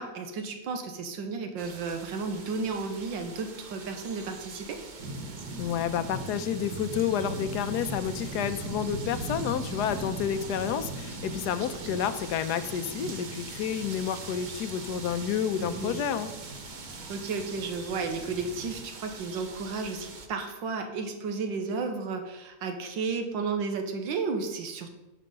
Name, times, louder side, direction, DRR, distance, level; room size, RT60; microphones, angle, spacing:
voice 1, 0.0-4.8 11.5-11.6 11.8-12.0 15.6-16.0 16.9-24.9, right 4 dB, 90° right, 5 dB, 1.7 m, -33 dB
sound 1, 1.6-20.3, right 4 dB, 40° right, 0.6 m, -44 dB
sound 2, 5.0-18.8, right 2 dB, 65° right, 1.7 m, -40 dB
voice 2, 5.6-16.3, left 8 dB, 70° left, 11 dB, 1.2 m, -30 dB
10.5 x 5.4 x 5.4 m, 1.0 s
omnidirectional pair, 2.0 m